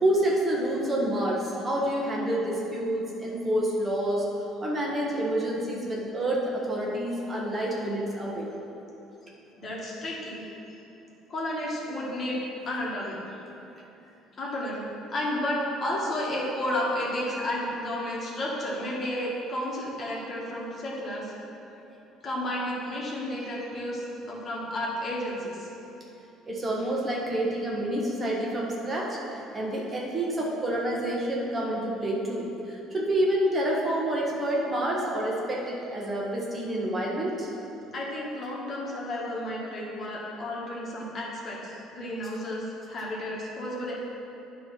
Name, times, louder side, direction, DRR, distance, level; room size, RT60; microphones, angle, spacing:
voice 1, 0.0-4.2 4.6-8.5 26.5-37.5, right 1 dB, 25° right, -3 dB, 1.3 m, -28 dB
voice 2, 9.6-10.4 11.3-12.4 12.7-13.2 14.4-14.8 15.1-21.3 22.2-25.7 37.9-43.9, left 1 dB, 40° left, -4 dB, 1.8 m, -32 dB
9.5 x 3.3 x 5.9 m, 2.9 s
cardioid pair, 105°, 0 cm